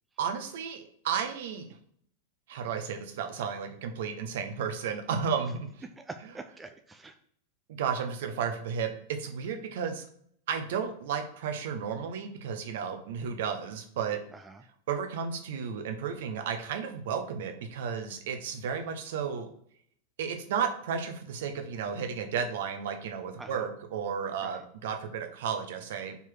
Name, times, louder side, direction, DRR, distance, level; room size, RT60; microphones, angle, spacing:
voice 1, 0.2-1.7 2.5-5.7 7.7-10.1 10.5-14.2 14.9-19.5 20.2-26.2, right 7 dB, 55° right, 6 dB, 1.0 m, -33 dB
voice 2, 6.0-7.2 14.3-14.6 23.4-23.7 24.4-24.6, right 3 dB, 10° right, 7 dB, 0.5 m, -45 dB
5.4 x 4.6 x 6.2 m, 0.65 s
figure-of-eight pair, 90°, 0 cm